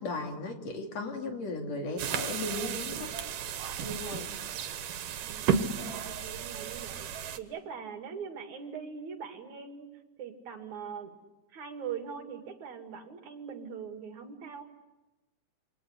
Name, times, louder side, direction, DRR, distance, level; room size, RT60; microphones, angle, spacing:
voice 1, 0.0-3.2 3.8-4.3, left 2 dB, 55° left, 3 dB, 3.9 m, -36 dB
sound 1, 2.0-7.4, right 7 dB, 85° right, 3.0 m, -33 dB
voice 2, 5.2-7.1 7.4-9.9 10.2-11.2 11.5-14.6, right 7 dB, 65° right, 5 dB, 3.5 m, -42 dB
28.0 x 25.5 x 8.2 m, 1.1 s
omnidirectional pair, 3.7 m